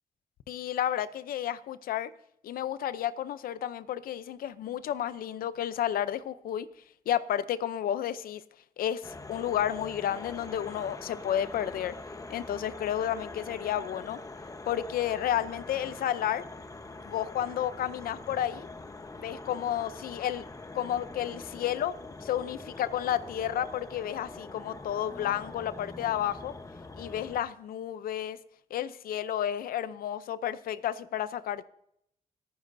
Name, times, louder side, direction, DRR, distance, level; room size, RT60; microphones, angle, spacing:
voice 1, 0.5-2.1 2.4-6.7 7.1-8.4 8.8-12.0 12.3-14.2 14.7-16.5 17.1-18.7 19.2-20.5 20.7-22.0 22.2-26.5 27.0-28.4 28.7-31.6, left 10 dB, 90° left, 0.6 m, -31 dB
sound 1, 9.0-27.4, left 2 dB, 25° left, 1.0 m, -44 dB
27.5 x 9.4 x 2.7 m
cardioid pair, 80°, 15 cm